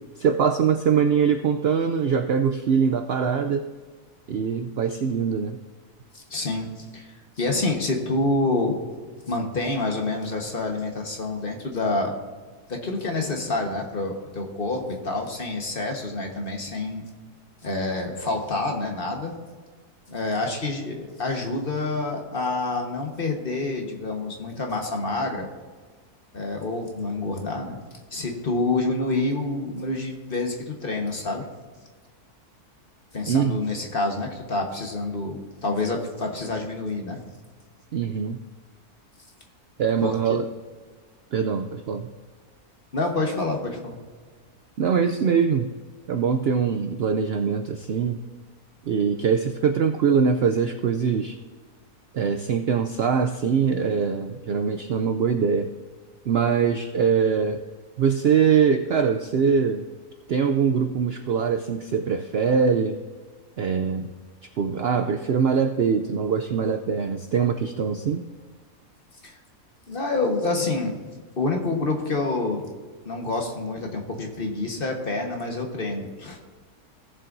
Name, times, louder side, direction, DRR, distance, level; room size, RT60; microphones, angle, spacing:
voice 1, 0.2-3.6 4.3-5.6 33.3-33.6 37.9-38.4 39.8-40.5 41.3-42.1 44.8-45.7 46.1-48.2 48.9-51.4 52.1-55.7 56.3-57.6 58.0-59.9 60.3-63.0 63.6-64.2 64.6-68.2, right 6 dB, 80° right, 8 dB, 0.5 m, -23 dB
voice 2, 6.1-7.1 7.4-8.8 9.3-12.1 12.7-17.0 17.6-19.3 20.1-25.5 26.3-27.8 28.1-31.4 33.1-37.2 40.0-40.4 42.9-44.0 69.2-69.4 69.9-70.9 71.4-72.6 73.0-76.4, left 2 dB, 40° left, 2 dB, 1.4 m, -27 dB
17.0 x 7.5 x 2.6 m, 1.5 s
omnidirectional pair, 1.6 m